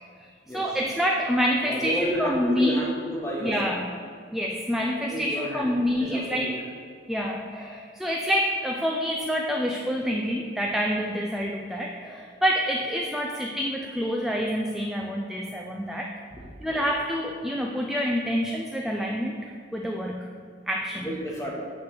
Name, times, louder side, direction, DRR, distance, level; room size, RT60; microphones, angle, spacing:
voice 1, 0.2-2.8 3.4-3.8 4.3-6.6 7.1-16.1 16.6-20.3 20.7-21.1, equal, ahead, 0 dB, 0.3 m, -27 dB
voice 2, 1.6-3.7 5.1-5.7 6.0-6.5 16.3-16.4 16.6-16.8 21.0-21.5, equal, 15° left, -3 dB, 1.1 m, -31 dB
8.1 x 3.2 x 5.9 m, 2.2 s
head